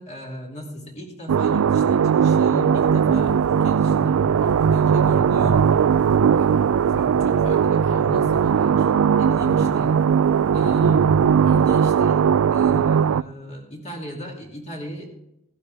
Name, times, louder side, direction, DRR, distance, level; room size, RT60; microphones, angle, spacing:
voice 1, 0.0-5.6 6.3-8.9 9.2-9.9 10.5-15.1, equal, 35° left, -1 dB, 2.8 m, -36 dB
sound 1, 1.3-13.2, right 7 dB, 85° right, 0.4 m, -18 dB
16.0 x 12.0 x 3.5 m, 0.81 s
head